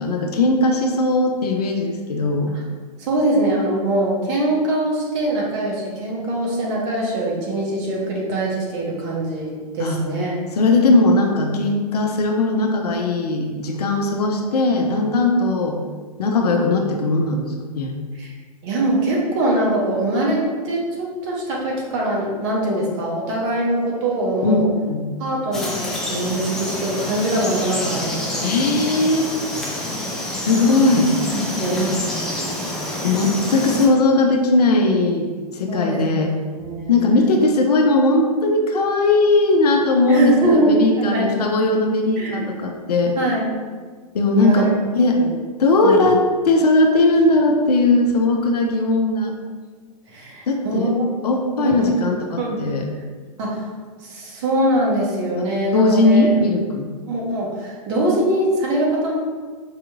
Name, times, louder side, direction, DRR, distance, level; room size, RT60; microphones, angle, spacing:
voice 1, 0.0-2.5 9.8-10.0 10.6-15.8 16.2-17.9 24.4-25.1 28.4-29.3 30.4-31.1 33.0-36.3 36.9-43.2 44.1-44.7 44.9-45.2 45.6-49.3 50.5-50.9 51.2-52.9 55.7-56.9, left 2 dB, 75° left, 3 dB, 0.6 m, -18 dB
voice 2, 3.0-10.4 18.2-18.3 18.6-24.7 25.2-28.6 31.3-32.0 32.9-33.2 35.7-37.0 40.1-40.8 41.1-41.3 42.2-42.5 43.2-43.5 44.4-44.8 45.1-45.3 45.8-46.0 50.1-51.1 51.6-52.0 52.4-52.6 53.4-53.7 54.0-56.3 57.1-59.1, right 1 dB, 45° right, -3 dB, 1.1 m, -23 dB
Frog, 25.5-33.9, left 1 dB, ahead, 0.5 m, -27 dB
4.8 x 2.9 x 2.4 m, 1.5 s
hypercardioid pair, 115°, 20 cm